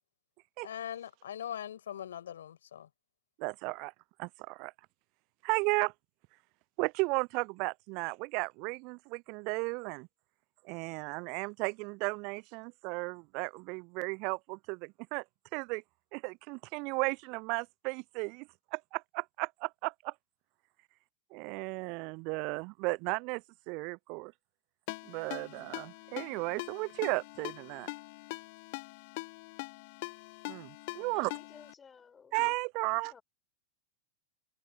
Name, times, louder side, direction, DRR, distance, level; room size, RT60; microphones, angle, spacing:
voice 1, 0.6-2.9, left 10 dB, 65° left, 7.5 m, -41 dB
voice 2, 3.4-3.9 4.2-4.7 5.4-5.9 6.8-10.1 10.6-15.2 15.5-15.8 16.1-20.1 21.3-24.3 25.1-27.9 30.5-31.3 32.3-33.1, right 30 dB, 45° right, 0.4 m, -35 dB
Ringtone, 24.9-31.7, left 27 dB, 50° left, 1.0 m, -43 dB
voice 3, 31.1-32.4 32.8-33.2, left 6 dB, 20° left, 7.9 m, -56 dB
figure-of-eight pair, 90°, 0 cm